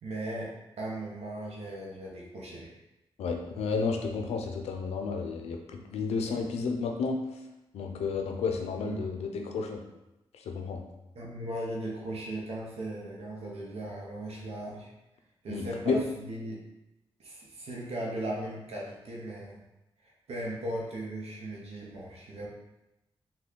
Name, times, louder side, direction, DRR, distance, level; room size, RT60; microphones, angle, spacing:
voice 1, 0.0-2.8 6.3-6.5 8.8-9.1 11.1-14.9 15.4-16.6 17.2-19.6 20.0-22.5, right 1 dB, 80° right, -2 dB, 0.7 m, -38 dB
voice 2, 3.2-7.2 7.7-9.8 10.5-10.8 15.5-16.0, left 4 dB, 90° left, 4 dB, 0.4 m, -31 dB
3.2 x 2.2 x 3.7 m, 0.94 s
cardioid pair, 55°, 10 cm